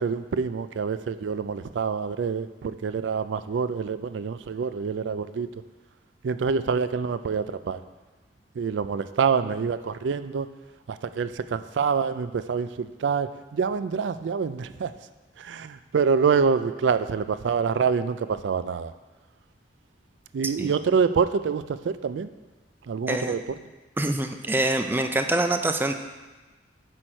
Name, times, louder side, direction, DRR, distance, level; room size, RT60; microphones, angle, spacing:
voice 1, 0.0-5.5 6.2-7.8 8.6-10.5 10.9-14.9 15.4-18.9 20.3-22.3 22.9-23.4, right 6 dB, 90° right, 12 dB, 0.4 m, -26 dB
voice 2, 24.0-25.9, right 1 dB, 10° right, 6 dB, 0.4 m, -25 dB
8.5 x 6.4 x 4.4 m, 1.2 s
head